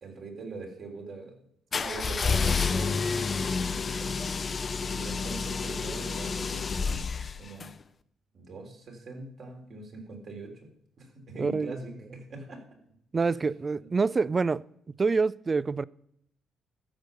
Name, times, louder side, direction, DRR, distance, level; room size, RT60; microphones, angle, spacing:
voice 1, 0.0-1.4 1.8-4.5 4.8-7.1 7.4-7.8 8.3-10.7 11.0-12.6 13.8-13.9, right 2 dB, 55° right, 3.2 m, -42 dB
sound 1, 1.7-7.7, left 5 dB, 40° left, 0.6 m, -29 dB
voice 2, 11.4-11.8 13.1-14.6 15.0-15.8, right 4 dB, 30° right, 0.3 m, -26 dB
13.5 x 5.3 x 6.6 m
cardioid pair, 90°, 0 cm